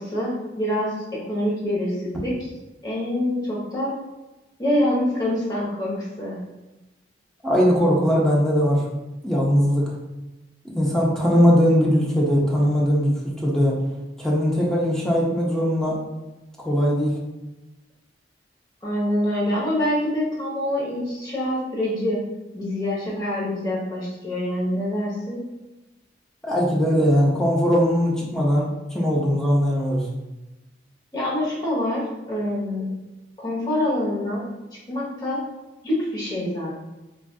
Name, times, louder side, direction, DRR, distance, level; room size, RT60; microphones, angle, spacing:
voice 1, 0.0-2.5 2.8-3.9 4.6-6.4 18.8-22.2 22.5-25.4 31.1-32.9 33.4-34.5 34.9-35.4 35.8-36.8, left 1 dB, 25° left, -6 dB, 0.9 m, -25 dB
voice 2, 7.4-8.8 9.2-9.9 10.6-13.8 14.2-16.0 16.6-17.1 26.5-30.1, equal, 5° left, -4 dB, 0.5 m, -20 dB
3.4 x 2.4 x 2.3 m, 1.0 s
head